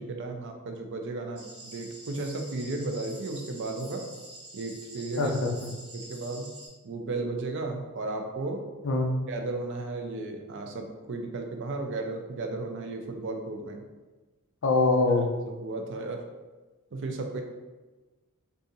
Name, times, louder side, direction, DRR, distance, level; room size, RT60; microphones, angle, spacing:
voice 1, 0.0-4.0 4.5-5.4 5.9-6.5 6.8-8.6 9.3-13.9 15.5-16.2 16.9-17.4, right 2 dB, 55° right, 4 dB, 0.4 m, -34 dB
sound 1, 1.4-6.7, right 1 dB, 85° right, 0.9 m, -47 dB
voice 2, 5.2-5.5 8.8-9.1 14.6-15.3, left 3 dB, 60° left, 2 dB, 0.5 m, -23 dB
2.7 x 2.4 x 3.8 m, 1.2 s
head